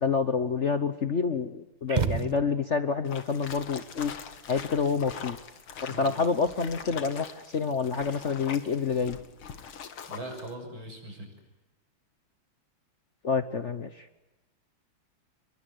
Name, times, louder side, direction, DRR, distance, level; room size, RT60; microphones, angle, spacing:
voice 1, 0.0-4.1 4.5-5.4 5.8-9.2 13.2-13.9, left 5 dB, 45° left, 11 dB, 1.1 m, -28 dB
sound 1, 1.9-2.9, right 5 dB, 30° right, 0.8 m, -30 dB
sound 2, 3.0-10.5, left 7 dB, 85° left, 2.6 m, -43 dB
voice 2, 10.1-11.3, right 1 dB, 75° right, 4 dB, 7.7 m, -40 dB
28.5 x 22.0 x 9.3 m, 1.1 s
omnidirectional pair, 2.2 m